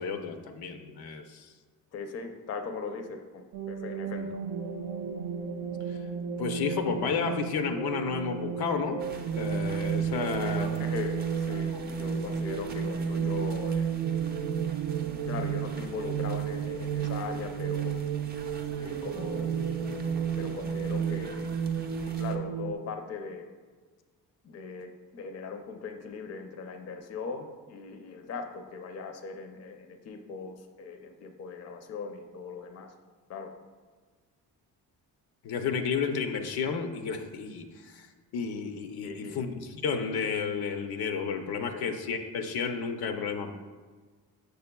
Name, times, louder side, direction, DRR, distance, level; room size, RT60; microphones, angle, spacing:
voice 1, 0.0-1.5 4.2-4.3 5.9-6.0 6.4-9.0 9.4-10.7 35.4-38.1 38.3-43.5, left 5 dB, 85° left, 6 dB, 0.6 m, -32 dB
voice 2, 1.9-4.4 10.1-13.9 15.1-18.0 18.8-19.5 20.4-21.5 22.2-23.5 24.4-32.9 33.3-33.5 39.0-39.5 41.7-42.0, left 4 dB, 45° left, 5 dB, 0.5 m, -39 dB
sound 1, 3.5-22.7, right 7 dB, 75° right, 0.5 m, -32 dB
sound 2, 9.0-22.4, right 3 dB, 25° right, 0.5 m, -47 dB
6.7 x 6.4 x 2.2 m, 1.5 s
cardioid pair, 130°, 37 cm